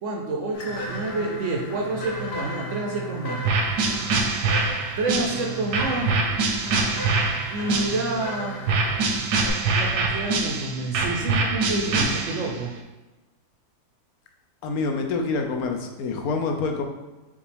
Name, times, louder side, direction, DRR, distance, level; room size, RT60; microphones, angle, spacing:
voice 1, 0.0-3.4 5.0-6.1 7.5-8.6 9.7-12.7, right 2 dB, 65° right, 0 dB, 0.8 m, -28 dB
sound 1, 0.5-9.5, right 1 dB, 55° left, 0.7 m, -35 dB
sound 2, 3.4-8.3 8.7-12.6, right 3 dB, 85° right, 1.2 m, -24 dB
voice 2, 14.6-16.8, left 4 dB, 75° left, 4 dB, 1.0 m, -26 dB
5.3 x 2.4 x 3.3 m, 1.1 s
omnidirectional pair, 1.6 m